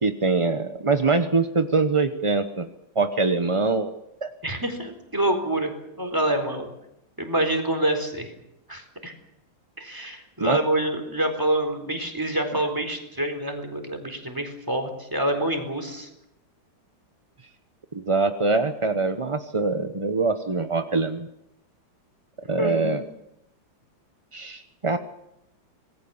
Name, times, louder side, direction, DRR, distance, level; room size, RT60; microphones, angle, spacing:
voice 1, 0.0-2.7 2.9-3.9 4.2-4.3 10.4-10.6 17.9-21.3 22.5-23.0 24.3-25.0, right 3 dB, 25° right, 8 dB, 0.7 m, -23 dB
voice 2, 4.4-6.7 7.2-8.3 8.7-9.1 9.8-16.1 22.6-23.0, right 1 dB, 10° right, 4 dB, 4.1 m, -27 dB
26.5 x 20.0 x 7.2 m, 0.82 s
omnidirectional pair, 2.1 m